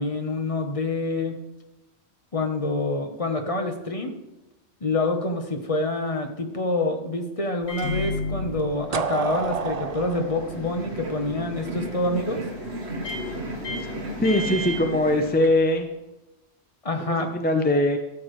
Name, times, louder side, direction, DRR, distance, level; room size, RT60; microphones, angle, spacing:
voice 1, 0.0-1.4 2.3-4.2 4.8-12.4 16.8-17.3, left 2 dB, 35° left, 5 dB, 0.9 m, -27 dB
Microwave oven, 7.6-15.8, left 2 dB, 75° left, 1.3 m, -35 dB
sound 1, 8.9-11.8, right 6 dB, 50° right, 0.5 m, -30 dB
sound 2, 10.3-15.5, right 1 dB, 75° right, 1.4 m, -35 dB
voice 2, 14.2-15.9 17.0-18.0, left 1 dB, 10° left, 5 dB, 0.5 m, -21 dB
13.0 x 8.2 x 3.1 m, 1.0 s
omnidirectional pair, 1.1 m